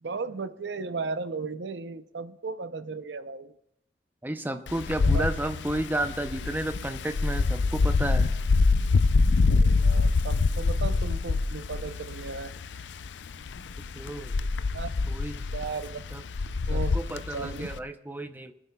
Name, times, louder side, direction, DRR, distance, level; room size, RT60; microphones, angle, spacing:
voice 1, 0.0-3.5 5.1-5.2 9.5-12.5 14.7-14.9 15.5-16.0 16.7-17.7, right 4 dB, 80° right, 0.6 m, -35 dB
voice 2, 4.2-8.3 14.0-14.4 15.1-15.4 16.1-16.2 16.7-18.5, right 1 dB, 10° right, 0.6 m, -32 dB
Wind, 4.7-17.8, left 3 dB, 85° left, 0.4 m, -25 dB
29.0 x 9.9 x 2.3 m
head